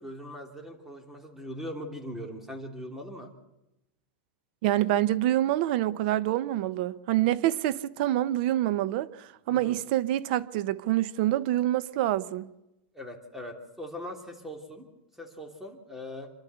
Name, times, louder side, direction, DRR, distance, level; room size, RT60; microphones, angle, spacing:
voice 1, 0.0-3.3 9.5-9.8 12.9-14.9 15.2-16.3, equal, 5° right, 3.0 m, -40 dB
voice 2, 4.6-12.5, right 14 dB, 55° right, 0.9 m, -26 dB
28.0 x 11.5 x 8.2 m
supercardioid pair, 145°, 6 cm